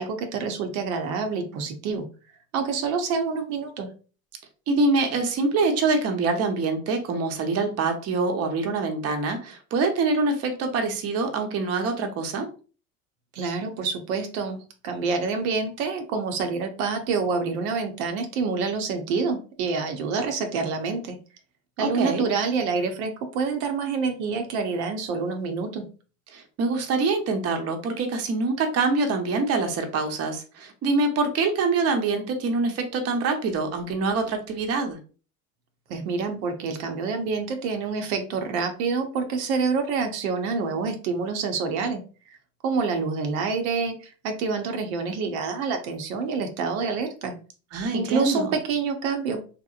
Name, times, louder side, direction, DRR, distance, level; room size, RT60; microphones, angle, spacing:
voice 1, 0.0-2.1 2.5-3.9 13.3-21.2 21.8-25.9 35.9-42.0 42.6-47.4 47.9-49.4, right 4 dB, 75° right, 5 dB, 0.7 m, -27 dB
voice 2, 4.7-12.5 21.8-22.2 26.3-35.0 47.7-48.5, right 3 dB, 35° right, 5 dB, 0.7 m, -25 dB
2.8 x 2.0 x 2.4 m, 0.37 s
supercardioid pair, 95°, 42 cm